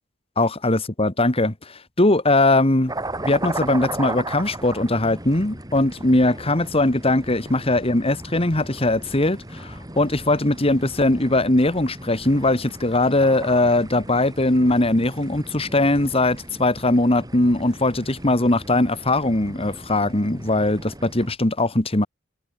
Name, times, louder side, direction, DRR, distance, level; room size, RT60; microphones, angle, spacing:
voice 1, 0.4-2.9 3.2-22.1, left 2 dB, 30° left, 1.9 m, -20 dB
sound 1, 2.9-21.4, right 2 dB, 20° right, 7.6 m, -36 dB
head